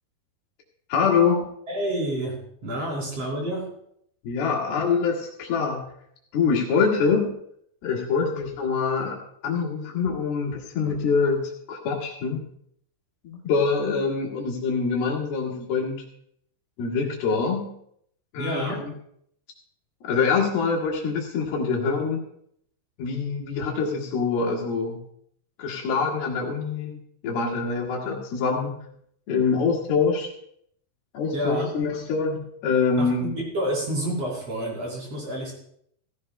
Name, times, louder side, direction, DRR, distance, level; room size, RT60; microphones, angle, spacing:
voice 1, 0.9-1.4 4.2-5.9 6.3-7.3 7.8-11.4 11.7-12.4 13.2-16.0 16.8-17.7 18.3-18.9 20.0-22.2 23.0-25.0 25.6-27.0 27.2-28.8 29.3-30.3 31.1-33.3, left 5 dB, 70° left, -2 dB, 3.7 m, -25 dB
voice 2, 1.7-3.7 18.4-18.9 31.3-31.7 33.0-35.5, right 1 dB, 40° right, -3 dB, 4.3 m, -29 dB
16.5 x 16.0 x 2.2 m, 0.69 s
omnidirectional pair, 4.6 m